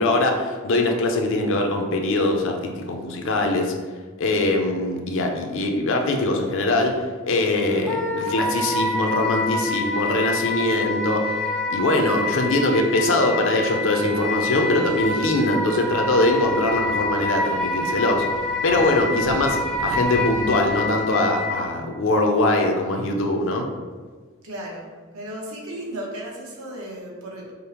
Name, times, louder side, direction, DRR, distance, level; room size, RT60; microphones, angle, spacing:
voice 1, 0.0-2.6 2.9-3.7 4.2-6.9 7.2-11.3 11.7-18.3 18.6-23.7, left 2 dB, 65° left, 2 dB, 0.5 m, -22 dB
Wind instrument woodwind instrument, 7.9-21.6, left 2 dB, 5° left, 0.4 m, -27 dB
sound 1, 14.1-20.7, right 2 dB, 55° right, 0.4 m, -40 dB
voice 2, 24.4-27.5, right 1 dB, 80° right, -1 dB, 0.8 m, -35 dB
5.1 x 2.0 x 2.9 m, 1.5 s
head